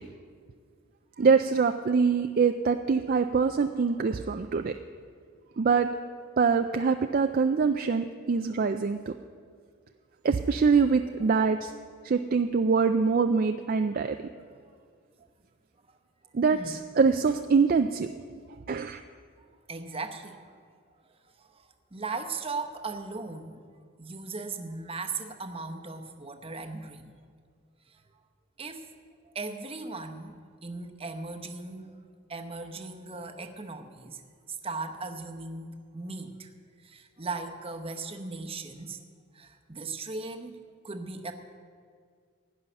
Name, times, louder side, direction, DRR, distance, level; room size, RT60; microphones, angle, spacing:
voice 1, 1.2-4.7 5.6-5.9 6.4-9.1 10.2-11.7 12.0-14.3 16.3-18.1 18.7-19.0, right 5 dB, 45° right, 7 dB, 0.4 m, -24 dB
voice 2, 19.7-20.6 21.2-23.6 24.0-27.1 27.9-28.0 28.6-28.9 29.3-31.9 32.3-34.2 34.5-36.5 36.8-39.0 39.3-41.3, right 3 dB, 25° right, 5 dB, 0.9 m, -38 dB
17.0 x 5.6 x 9.9 m, 2.1 s
head